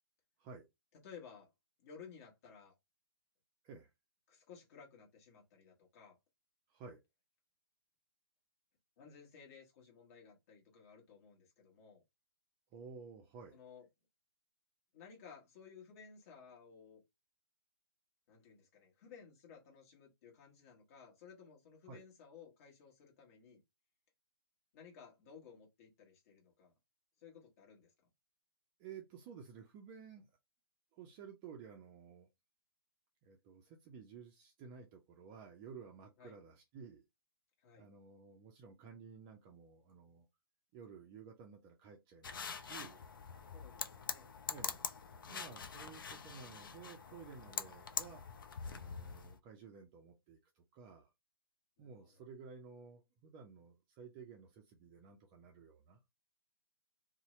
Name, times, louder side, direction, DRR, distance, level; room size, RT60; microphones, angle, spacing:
voice 1, 1.0-1.5 1.8-2.7 4.3-6.2 9.0-12.0 13.5-13.9 14.9-17.0 18.3-23.6 24.7-26.7 27.2-27.9 36.2-36.4 37.6-37.9 43.5-44.6 51.8-52.2, left 6 dB, 40° left, 1.1 m, -57 dB
voice 2, 6.7-7.0 12.7-13.6 21.9-22.0 28.8-30.3 30.9-32.3 33.2-37.1 37.8-40.3 40.7-43.0 44.5-44.8 45.3-48.2 48.6-51.1 51.8-56.0, right 6 dB, 25° right, 0.4 m, -54 dB
sound 1, 42.2-49.4, left 6 dB, 60° left, 0.5 m, -44 dB
2.7 x 2.0 x 2.9 m
figure-of-eight pair, 135°, 13 cm